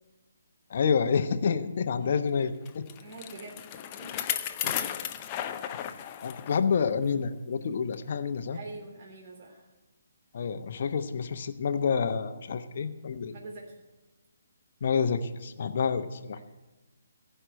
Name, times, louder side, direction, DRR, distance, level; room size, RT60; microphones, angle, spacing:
voice 1, 0.7-2.9 4.6-4.7 5.7-8.6 10.3-13.3 14.8-16.4, left 6 dB, 50° left, 9 dB, 1.0 m, -28 dB
Bicycle, 2.7-6.6 7.0-7.1 7.9-8.0, left 10 dB, 30° left, 0.7 m, -34 dB
voice 2, 3.0-3.6 3.9-4.2 8.5-9.7 13.3-13.6, right 3 dB, 45° right, -1 dB, 3.1 m, -44 dB
16.0 x 5.7 x 9.3 m, 1.1 s
figure-of-eight pair, 140°, 0 cm